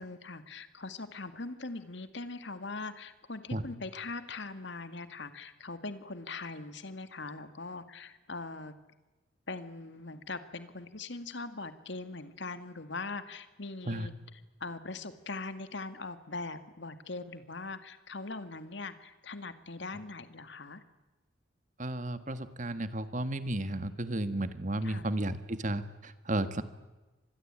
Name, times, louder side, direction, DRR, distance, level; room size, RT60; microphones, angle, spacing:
voice 1, 0.0-8.7 9.5-20.8 24.8-25.1, left 3 dB, 65° left, 10 dB, 2.0 m, -41 dB
voice 2, 21.8-26.6, right 1 dB, 40° right, 11 dB, 1.7 m, -33 dB
26.0 x 21.0 x 8.9 m, 1.1 s
head